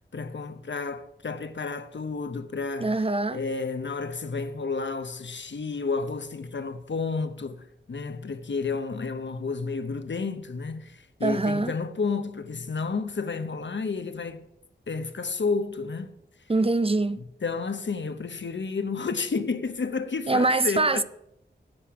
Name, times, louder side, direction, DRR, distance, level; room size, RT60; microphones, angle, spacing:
voice 1, 0.1-3.0 3.3-14.4 14.9-16.1 17.4-21.0, left 4 dB, 75° left, 0.9 m, -31 dB
voice 2, 2.8-3.4 11.2-11.7 16.5-17.2 20.3-21.0, right 2 dB, 30° right, 0.5 m, -24 dB
11.5 x 8.9 x 4.8 m
wide cardioid pair, 50°, 19 cm